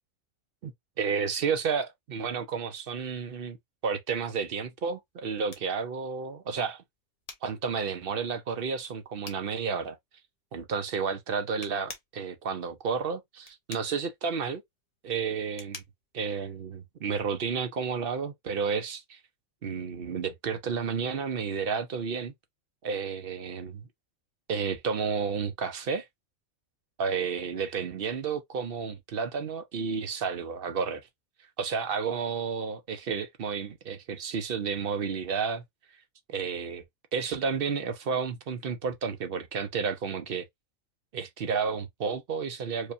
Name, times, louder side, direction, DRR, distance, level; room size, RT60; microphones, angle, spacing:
voice 1, 0.6-3.6 3.8-6.8 7.4-10.0 10.5-14.6 15.0-15.8 16.1-19.2 19.6-22.3 22.8-23.9 24.5-26.1 27.0-31.0 31.6-35.6 36.3-36.8 37.1-40.4 41.1-42.9, right 5 dB, 55° right, 0.7 m, -31 dB
sound 1, 5.0-17.3, left 4 dB, 35° left, 0.8 m, -51 dB
4.8 x 2.2 x 2.6 m
omnidirectional pair, 1.5 m